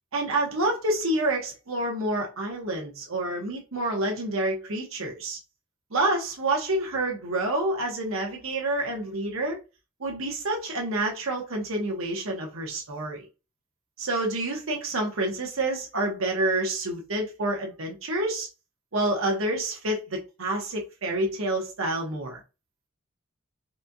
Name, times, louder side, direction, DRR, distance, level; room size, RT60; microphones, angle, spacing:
voice 1, 0.1-5.4 5.9-9.6 10.0-13.3 14.0-18.5 18.9-22.4, right 2 dB, 85° right, 1.0 m, -28 dB
4.2 x 2.6 x 2.3 m
head